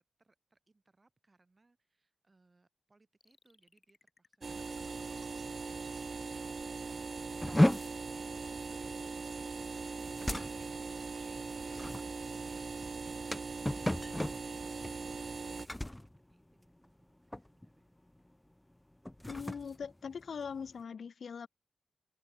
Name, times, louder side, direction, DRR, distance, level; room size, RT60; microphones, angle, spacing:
voice 1, 0.0-13.0 15.3-18.0, right 3 dB, 35° right, 6.2 m, -72 dB
sound 1, 3.2-8.4 8.7-8.8 9.0-9.1 9.4-9.5 9.7-9.8 10.1-10.2 10.5-10.6 10.9-11.0 11.4-11.5 11.8-11.9 12.3-12.4 12.8-12.9 13.3-13.4, left 4 dB, 50° left, 3.7 m, -62 dB
sound 2, 4.4-15.7, right 4 dB, 55° right, 0.4 m, -40 dB
sound 3, 7.4-17.0 17.3-17.7 18.1-18.3 18.9-20.8, left 1 dB, 15° left, 0.5 m, -35 dB
voice 2, 19.3-21.5, left 6 dB, 70° left, 0.8 m, -41 dB
cardioid pair, 45°, 0 cm